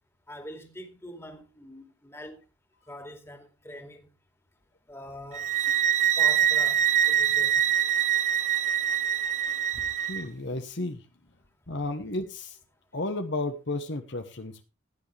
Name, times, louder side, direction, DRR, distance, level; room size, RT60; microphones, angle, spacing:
voice 1, 0.3-2.4 2.9-4.1 4.9-5.5 6.2-7.7 9.7-9.9, equal, 15° left, 2.4 m, -44 dB
sound 1, 5.3-10.2, right 9 dB, 35° right, 0.7 m, -24 dB
voice 2, 10.0-11.0 11.7-12.6 12.9-14.6, left 2 dB, 60° left, 1.2 m, -33 dB
16.0 x 9.8 x 3.4 m
head